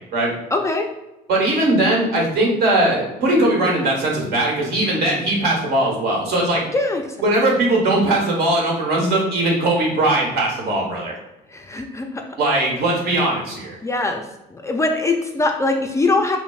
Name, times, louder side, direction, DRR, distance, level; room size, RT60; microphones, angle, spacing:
voice 1, 0.5-0.9 6.7-7.0 11.5-12.1 13.8-14.2 14.5-16.4, left 2 dB, 15° left, 3 dB, 0.3 m, -21 dB
voice 2, 1.3-6.6 7.2-11.1 12.4-13.8, right 1 dB, 65° right, -2 dB, 1.3 m, -19 dB
5.0 x 2.1 x 2.4 m, 0.95 s
cardioid pair, 110°, 17 cm